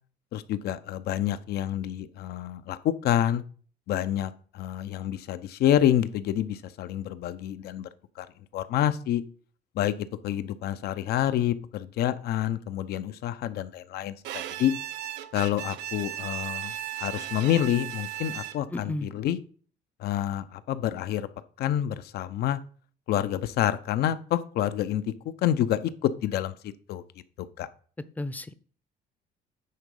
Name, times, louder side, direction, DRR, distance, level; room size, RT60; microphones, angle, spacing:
voice 1, 0.3-3.4 3.9-7.9 8.2-8.3 8.5-9.2 9.8-14.1 14.6-14.7 15.3-16.7 17.0-19.4 20.0-21.3 21.6-22.6 23.1-26.5 26.9-27.0 27.6-27.7, left 11 dB, 70° left, 13 dB, 0.7 m, -28 dB
Bowed string instrument, 14.2-18.8, right 13 dB, 90° right, 0.6 m, -36 dB
voice 2, 18.7-19.1 28.2-28.5, left 2 dB, 10° left, 14 dB, 0.6 m, -33 dB
9.5 x 3.9 x 5.4 m, 0.42 s
cardioid pair, 110°, 17 cm